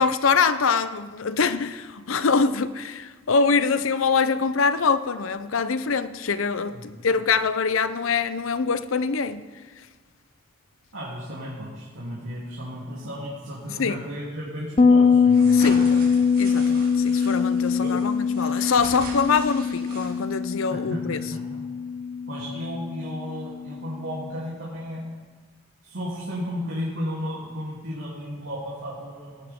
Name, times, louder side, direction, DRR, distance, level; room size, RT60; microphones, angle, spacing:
voice 1, 0.0-9.4 13.8-14.0 15.5-16.0 16.4-21.2, left 5 dB, 75° left, 0.6 m, -24 dB
voice 2, 10.9-15.9 17.8-17.9 20.7-21.6 22.3-25.1 25.8-29.5, equal, 80° right, 3.1 m, -34 dB
Bass guitar, 14.8-24.1, left 5 dB, 30° left, 0.6 m, -22 dB
sound 1, 15.3-20.4, right 2 dB, 45° right, 4.0 m, -41 dB
18.5 x 12.5 x 3.7 m
head